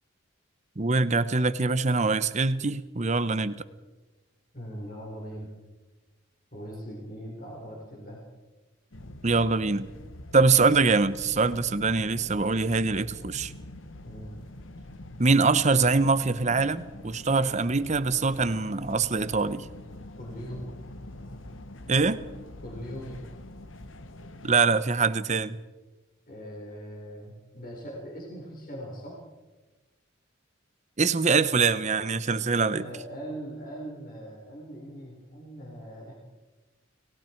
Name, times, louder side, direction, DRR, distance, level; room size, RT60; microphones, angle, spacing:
voice 1, 0.8-3.6 9.2-9.9 10.3-13.5 15.2-19.7 21.9-22.2 24.4-25.6 31.0-32.9, right 4 dB, 35° right, 14 dB, 0.8 m, -24 dB
voice 2, 4.5-5.5 6.5-8.2 14.0-14.3 20.2-20.7 22.6-23.2 26.3-29.2 32.7-36.1, equal, 45° left, -2 dB, 4.4 m, -40 dB
sound 1, 8.9-24.6, left 1 dB, 70° left, 1.2 m, -44 dB
30.0 x 19.0 x 4.6 m, 1.2 s
head